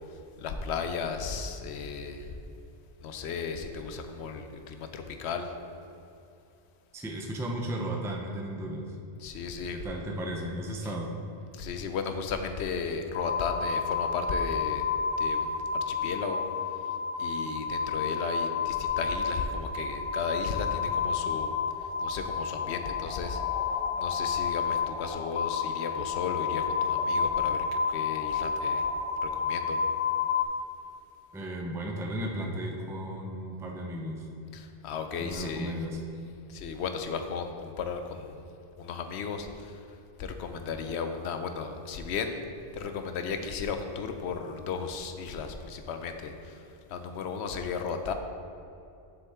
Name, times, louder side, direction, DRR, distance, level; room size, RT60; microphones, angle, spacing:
voice 1, 0.1-2.4 3.0-5.5 9.2-9.8 11.5-14.8 15.2-16.4 17.2-21.5 21.8-23.4 24.0-28.9 29.2-29.8 34.5-35.7 36.5-38.4 38.8-39.9 40.2-42.4 42.7-48.1, left 5 dB, 85° left, 7 dB, 0.9 m, -35 dB
voice 2, 6.9-9.0 9.6-11.1 31.3-34.3 35.2-36.0, right 1 dB, 5° right, 0 dB, 0.5 m, -35 dB
sound 1, 13.1-30.4, left 6 dB, 60° left, 0.3 m, -30 dB
7.1 x 6.8 x 3.6 m, 2.7 s
omnidirectional pair, 1.1 m